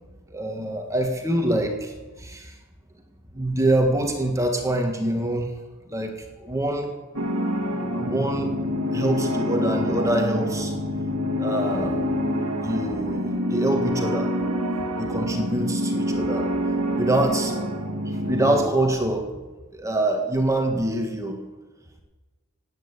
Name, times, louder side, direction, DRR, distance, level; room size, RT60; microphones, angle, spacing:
voice 1, 0.3-1.9 2.2-2.5 3.3-5.5 5.9-6.9 8.0-8.5 8.9-10.7 11.4-12.0 12.6-14.3 15.0-16.5 16.9-17.5 18.2-19.3 19.7-21.4, right 1 dB, 15° right, 3 dB, 1.7 m, -25 dB
sound 1, 7.1-18.7, equal, 75° right, 1.9 m, -26 dB
17.0 x 9.3 x 8.3 m, 1.2 s
head